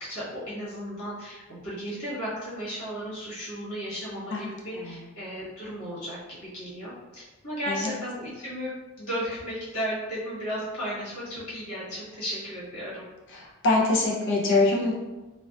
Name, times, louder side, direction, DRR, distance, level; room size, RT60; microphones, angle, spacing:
voice 1, 0.1-6.2 6.5-8.7 9.0-13.0, equal, 75° left, -9 dB, 1.2 m, -34 dB
voice 2, 13.3-14.9, left 2 dB, 55° left, -3 dB, 0.4 m, -24 dB
2.5 x 2.1 x 2.3 m, 1.1 s
head